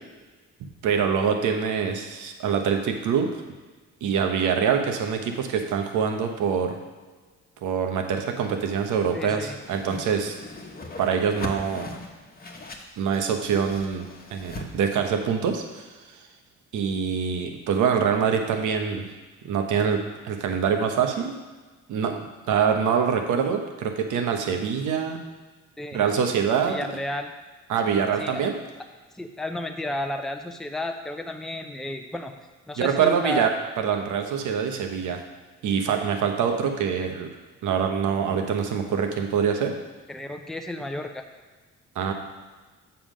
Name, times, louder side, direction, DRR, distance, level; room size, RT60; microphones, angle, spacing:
voice 1, 0.8-3.4 4.0-6.8 7.6-10.4 11.0-11.9 13.0-15.9 16.7-19.1 19.4-21.4 21.9-22.2 22.5-25.2 25.9-26.8 27.7-28.5 32.8-33.5 33.8-35.2 35.6-37.3 37.6-39.7 41.9-42.1, right 7 dB, 80° right, 4 dB, 1.0 m, -25 dB
voice 2, 9.1-9.6 25.8-26.1 26.7-27.3 28.2-28.4 29.1-32.3 32.7-33.5 40.1-41.2, left 1 dB, ahead, 5 dB, 0.6 m, -32 dB
Whoosh swoosh swish, 9.6-14.7, left 2 dB, 30° left, 1.1 m, -39 dB
7.1 x 5.8 x 5.0 m, 1.3 s
cardioid pair, 90°, 30 cm